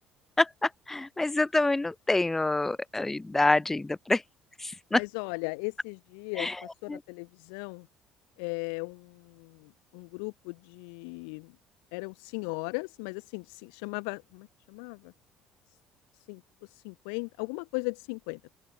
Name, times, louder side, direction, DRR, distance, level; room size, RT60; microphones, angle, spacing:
voice 1, 0.4-4.2 4.6-5.0 6.4-6.6 6.9-7.0, left 2 dB, 15° left, 1.7 m, -27 dB
voice 2, 4.9-6.5 6.8-7.9 8.4-11.5 11.9-15.1 16.3-18.5, left 40 dB or more, 80° left, 7.0 m, -37 dB
open air
hypercardioid pair, 70°, 2 cm